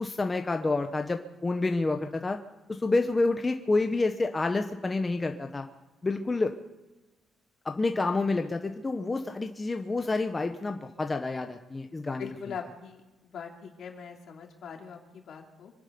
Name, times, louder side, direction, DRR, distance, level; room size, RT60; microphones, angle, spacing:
voice 1, 0.0-2.4 2.7-5.7 6.0-6.5 7.6-12.3, left 3 dB, 25° left, 5 dB, 1.0 m, -28 dB
voice 2, 12.2-15.7, left 7 dB, 65° left, 1 dB, 2.9 m, -42 dB
25.5 x 11.0 x 5.3 m, 1.1 s
cardioid pair, 90°, 0 cm